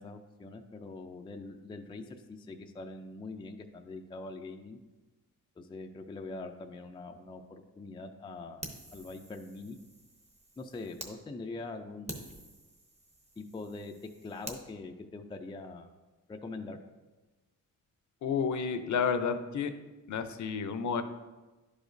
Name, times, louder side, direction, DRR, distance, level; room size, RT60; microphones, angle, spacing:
voice 1, 0.0-4.8 5.6-8.6 8.9-9.8 10.6-12.2 13.4-13.9 14.2-15.9 16.3-16.8, left 3 dB, 15° left, 4 dB, 0.4 m, -43 dB
Fire, 8.6-11.1 11.6-11.7 12.1-14.6, right 2 dB, 20° right, 0.9 m, -47 dB
voice 2, 18.2-19.7 20.1-21.0, left 6 dB, 60° left, 8 dB, 0.6 m, -30 dB
11.0 x 5.0 x 2.6 m, 1.2 s
cardioid pair, 120°, 33 cm